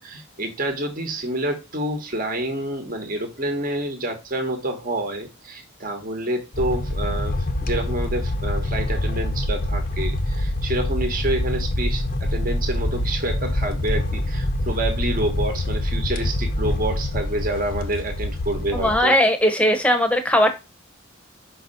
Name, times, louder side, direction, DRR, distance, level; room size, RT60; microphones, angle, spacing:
voice 1, 0.0-19.1, right 1 dB, 40° right, 1.2 m, -28 dB
sound 1, 6.5-19.0, left 1 dB, 45° left, 0.8 m, -25 dB
voice 2, 18.7-20.5, equal, 5° left, 1.0 m, -18 dB
5.4 x 4.0 x 5.4 m
head